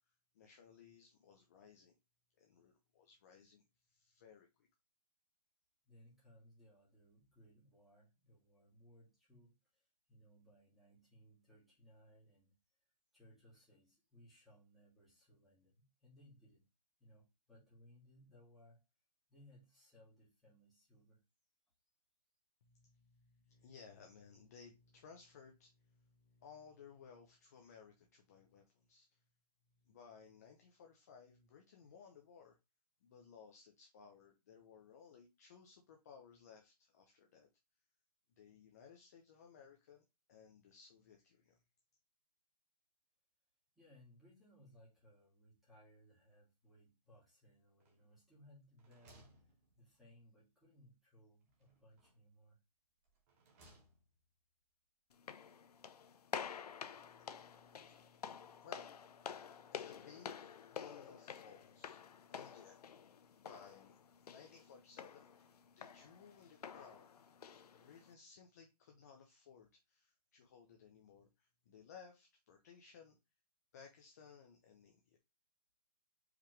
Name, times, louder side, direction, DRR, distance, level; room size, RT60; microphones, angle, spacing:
voice 1, 0.3-2.0 2.4-3.6 3.9-4.7 22.6-29.2 29.8-32.6 33.0-37.5 38.4-41.6 57.0-62.0 62.3-62.8 63.3-64.0 64.2-65.5 65.8-67.1 67.7-73.2 73.7-75.2, left 6 dB, 25° left, 0.6 m, -60 dB
voice 2, 5.8-12.6 13.1-16.7 17.0-18.8 19.3-21.2 43.8-52.6, equal, ahead, 1.8 m, -65 dB
sound 1, 47.8-48.3 48.6-50.2 51.5-52.4 53.0-54.3, right 1 dB, 20° right, 1.2 m, -67 dB
sound 2, 55.1-68.1, left 7 dB, 70° left, 0.6 m, -50 dB
4.8 x 3.6 x 3.1 m
hypercardioid pair, 165°, 21 cm